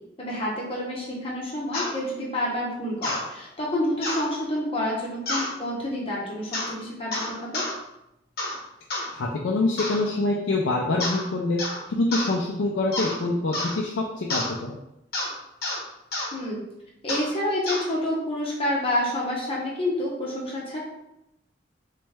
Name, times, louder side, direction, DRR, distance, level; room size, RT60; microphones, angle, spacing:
voice 1, 0.2-7.6 16.3-16.6 17.0-20.8, left 1 dB, 30° left, -4 dB, 1.0 m, -28 dB
sound 1, 1.7-1.9 3.0-3.2 4.0-4.3 5.3-5.5 6.5-6.7 7.1-7.7 8.4-8.6 8.9-9.1 9.8-10.0 11.0-11.3 11.6-11.8 12.1-12.3 12.9-13.2 13.5-13.8 14.3-14.5 15.1-15.3 15.6-15.8 16.1-16.3 17.1-17.3 17.7-17.9, left 2 dB, 55° left, 1.0 m, -29 dB
voice 2, 9.1-11.6 11.9-14.8, left 2 dB, 80° left, -1 dB, 0.5 m, -25 dB
3.3 x 3.1 x 3.3 m, 0.87 s
head